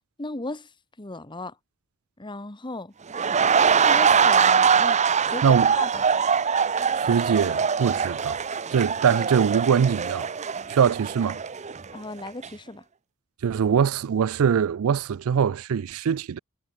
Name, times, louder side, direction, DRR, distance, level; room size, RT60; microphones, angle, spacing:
voice 1, 0.2-0.7 1.0-1.6 2.2-2.9 3.8-6.0 11.9-12.8, left 2 dB, 20° left, 1.3 m, -36 dB
sound 1, 3.1-12.0 12.3-12.5, right 6 dB, 35° right, 0.7 m, -22 dB
voice 2, 5.4-5.7 7.0-8.4 8.7-10.3 10.7-11.4 13.4-16.4, right 7 dB, 75° right, 0.4 m, -22 dB
head